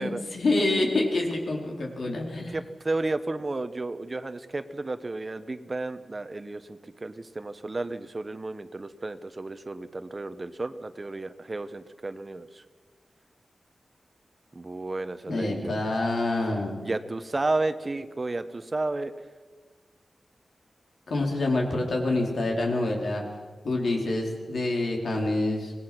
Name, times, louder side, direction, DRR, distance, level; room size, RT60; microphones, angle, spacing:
voice 1, 0.0-2.5 15.3-16.8 21.1-23.2 23.6-25.7, left 2 dB, 80° left, 0 dB, 4.3 m, -27 dB
voice 2, 2.5-12.6 14.5-15.8 16.8-19.1, right 2 dB, 35° right, 11 dB, 1.0 m, -32 dB
25.0 x 18.5 x 6.1 m, 1.4 s
wide cardioid pair, 95°, 0 cm